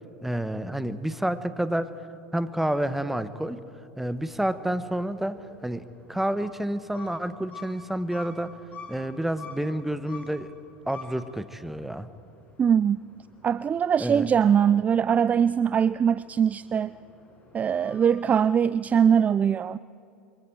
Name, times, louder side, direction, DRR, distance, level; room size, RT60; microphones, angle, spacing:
voice 1, 0.2-1.9 2.3-3.6 4.0-8.6 8.9-10.5 10.9-12.1 14.0-14.3, right 1 dB, 5° right, 12 dB, 1.1 m, -29 dB
sound 1, 4.2-18.2, left 3 dB, 30° left, 6.8 m, -49 dB
voice 2, 12.6-13.0 13.4-16.9 17.5-19.8, right 8 dB, 25° right, 17 dB, 0.4 m, -22 dB
26.0 x 24.0 x 4.7 m, 2.7 s
hypercardioid pair, 85°, 6 cm